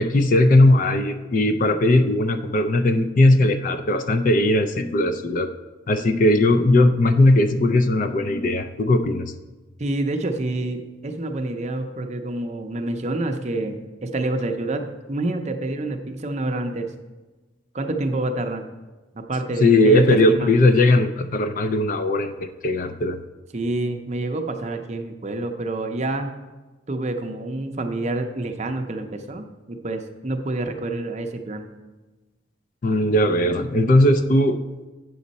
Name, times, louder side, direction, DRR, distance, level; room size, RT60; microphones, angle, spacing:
voice 1, 0.0-5.5 5.9-9.3 19.5-23.2 32.8-34.6, left 1 dB, 40° left, 9 dB, 0.4 m, -18 dB
voice 2, 9.8-16.9 17.7-18.7 19.1-20.5 23.5-26.4 26.9-31.7, right 2 dB, 35° right, 5 dB, 0.6 m, -27 dB
8.4 x 6.3 x 4.1 m, 1.2 s
head